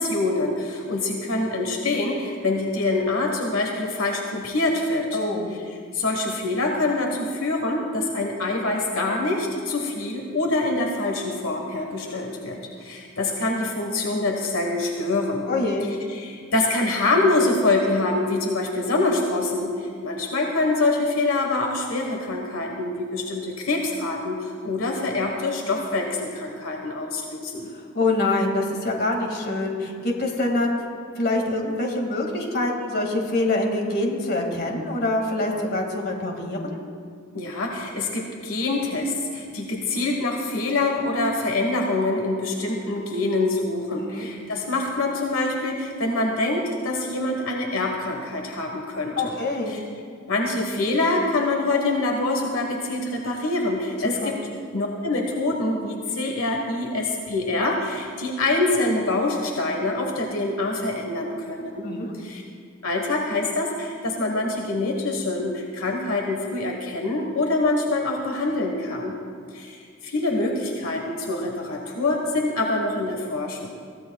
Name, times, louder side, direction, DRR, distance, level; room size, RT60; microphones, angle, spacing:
voice 1, 0.0-5.2 5.9-15.4 16.1-27.7 37.3-49.3 49.7-49.8 50.3-54.4 54.7-61.9 62.2-62.4 62.8-69.2 69.5-73.7, left 2 dB, 80° left, 2 dB, 1.3 m, -25 dB
voice 2, 5.1-5.5 12.1-12.3 15.5-15.9 27.9-30.8 31.2-36.8 44.0-44.3 49.2-49.7 54.0-54.3 61.8-62.2, left 2 dB, 50° left, 1 dB, 2.1 m, -25 dB
22.0 x 15.5 x 2.3 m, 2.2 s
head